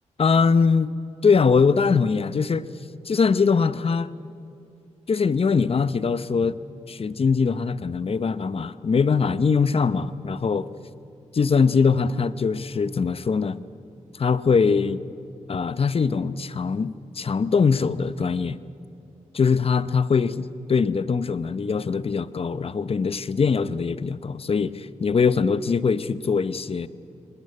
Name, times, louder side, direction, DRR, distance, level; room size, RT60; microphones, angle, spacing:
voice 1, 0.2-0.9 1.2-2.7 3.0-4.1 5.1-6.6 6.9-10.7 11.3-13.6 14.1-15.0 15.5-18.6 19.3-26.9, left 5 dB, 50° left, 15 dB, 0.9 m, -22 dB
21.5 x 20.0 x 9.6 m, 2.6 s
cardioid pair, 70°, 13 cm